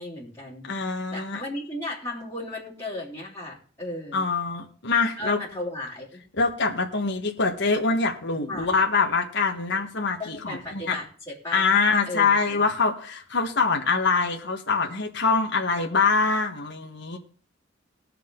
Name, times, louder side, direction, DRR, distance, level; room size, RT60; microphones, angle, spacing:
voice 1, 0.0-0.7 1.1-4.3 5.2-6.2 8.5-8.7 10.2-11.7 12.0-12.6, left 1 dB, 15° left, -6 dB, 3.2 m, -35 dB
voice 2, 0.6-1.4 4.1-5.4 6.3-11.0 11.5-17.2, left 4 dB, 60° left, 1 dB, 1.5 m, -24 dB
20.0 x 6.8 x 3.9 m, 0.43 s
head